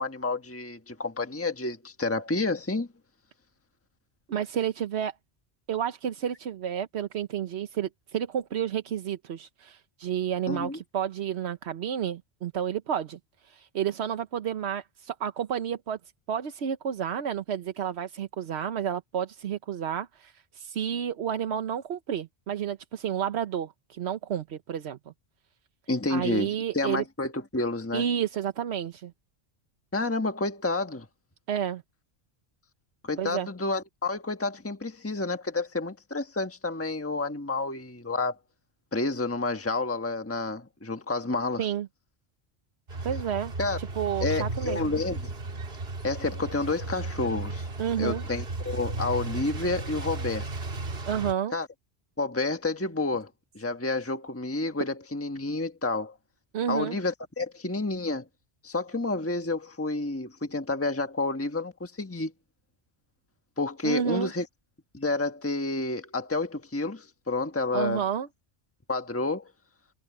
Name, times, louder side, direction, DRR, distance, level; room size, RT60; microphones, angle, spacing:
voice 1, 0.0-2.9 10.5-10.8 25.9-28.1 29.9-31.1 33.0-38.4 38.9-41.7 43.6-43.8 44.2-45.3 46.0-47.7 48.0-50.5 51.5-51.7 52.2-53.3 53.5-56.1 56.7-58.3 58.6-62.3 63.6-64.5 64.9-68.0 68.9-69.5, left 3 dB, 15° left, 1.3 m, -30 dB
voice 2, 4.3-5.1 5.7-13.2 13.4-16.0 16.3-25.0 26.1-27.0 27.9-29.1 31.5-31.8 33.2-33.5 41.6-41.9 43.0-43.5 43.8-44.8 47.8-48.2 51.1-51.5 56.5-57.0 63.8-64.3 67.7-68.3, right 9 dB, 85° right, 1.1 m, -30 dB
sound 1, 42.9-51.3, right 2 dB, 70° right, 1.8 m, -34 dB
omnidirectional pair, 1.1 m